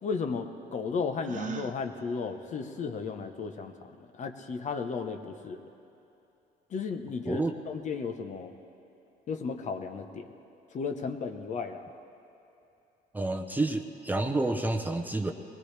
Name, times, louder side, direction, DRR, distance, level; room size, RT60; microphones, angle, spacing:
voice 1, 0.0-5.6 6.7-8.5 9.3-10.3 10.7-11.8, left 5 dB, 45° left, 6 dB, 1.0 m, -34 dB
Gasp, 1.2-1.8, right 7 dB, 45° right, 0.9 m, -38 dB
voice 2, 7.3-7.6 13.1-15.3, right 2 dB, 10° right, 4 dB, 0.7 m, -29 dB
21.5 x 19.0 x 3.4 m, 2.8 s
cardioid pair, 110°, 17 cm